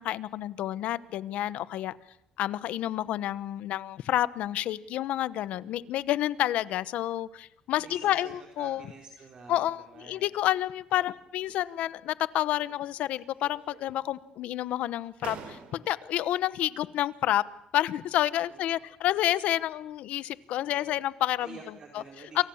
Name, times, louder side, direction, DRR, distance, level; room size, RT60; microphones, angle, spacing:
voice 1, 0.0-2.0 2.4-8.8 9.5-17.4 17.7-21.5 22.4-22.5, left 13 dB, 75° left, 17 dB, 1.0 m, -29 dB
voice 2, 7.8-10.3 18.5-18.8 20.6-21.0 21.4-22.4, right 4 dB, 35° right, 1 dB, 3.8 m, -48 dB
sound 1, 11.3-11.9 12.3-13.1 13.4-14.1 14.8-14.9 15.2-16.2, right 7 dB, 65° right, 4.4 m, -48 dB
28.5 x 24.5 x 7.2 m, 0.77 s
cardioid pair, 150°, 2 cm